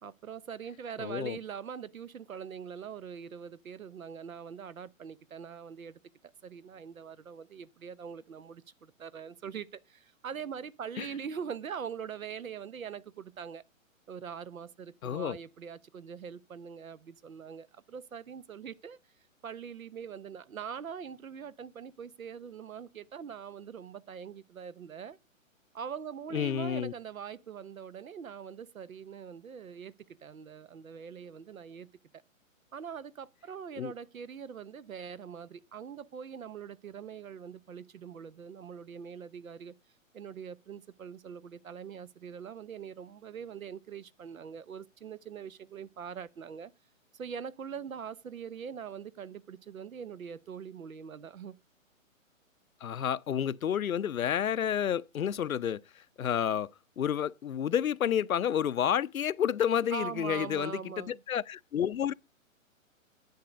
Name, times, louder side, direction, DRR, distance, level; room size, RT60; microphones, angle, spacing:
voice 1, 0.0-13.6 14.1-19.0 19.4-25.2 25.7-29.9 30.2-31.9 32.7-39.7 40.1-46.7 47.1-51.5 59.9-61.2, right 7 dB, 85° right, 0.9 m, -43 dB
voice 2, 1.0-1.4 11.0-11.1 15.0-15.4 26.3-26.9 33.8-33.9 52.8-56.7 57.0-62.1, left 9 dB, 85° left, 0.6 m, -30 dB
10.5 x 8.1 x 5.1 m
hypercardioid pair, 135°, 40 cm